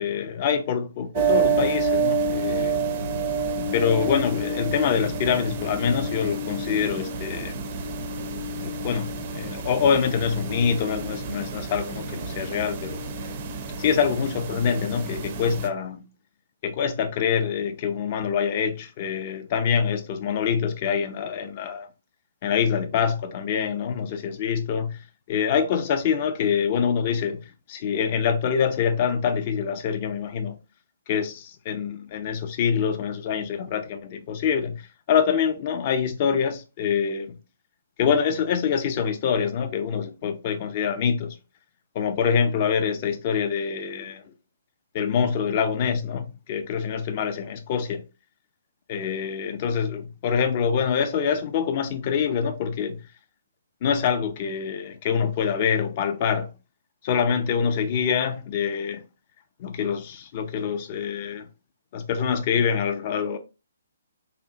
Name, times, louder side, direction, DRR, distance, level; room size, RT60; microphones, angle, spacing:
voice 1, 0.0-2.8 3.6-7.6 8.6-13.0 13.8-16.1 16.6-21.9 22.4-25.0 25.3-27.4 27.7-30.6 31.1-37.4 38.0-41.3 41.9-44.2 44.9-48.0 48.9-53.0 53.8-56.5 57.0-59.0 59.6-61.5 61.9-63.4, left 7 dB, 35° left, 0.4 m, -25 dB
sound 1, 1.1-15.7, right 4 dB, 35° right, 0.4 m, -29 dB
2.7 x 2.1 x 2.6 m
figure-of-eight pair, 130°, 0 cm